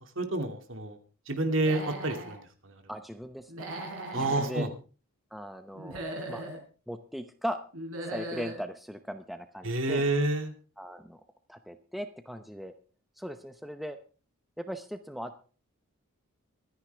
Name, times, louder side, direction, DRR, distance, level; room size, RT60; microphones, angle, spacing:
voice 1, 0.2-1.0 1.3-2.7 4.1-4.7 9.6-10.5, right 2 dB, 60° right, 5 dB, 2.4 m, -29 dB
Human voice / Animal, 1.5-2.4 3.5-4.5 5.7-6.6 7.7-8.6, right 1 dB, 80° right, 4.7 m, -38 dB
voice 2, 2.9-3.7 4.1-4.7 5.3-6.0 6.3-6.4 6.9-7.6 8.1-10.0 10.8-11.2 11.5-12.7 13.2-14.0 14.6-15.5, equal, ahead, 7 dB, 0.8 m, -38 dB
24.0 x 9.8 x 3.4 m, 0.37 s
head